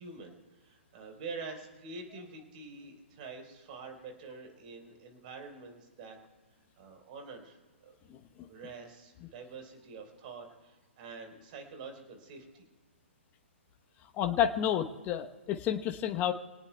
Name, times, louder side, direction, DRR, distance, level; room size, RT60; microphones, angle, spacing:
voice 1, 0.0-6.2 6.8-7.6 7.8-7.9 8.5-12.7, right 4 dB, 40° right, 3 dB, 4.2 m, -46 dB
voice 2, 8.1-8.5 14.2-16.3, left 10 dB, 25° left, 5 dB, 1.0 m, -30 dB
27.0 x 18.5 x 2.3 m, 1.2 s
figure-of-eight pair, 125°, 7 cm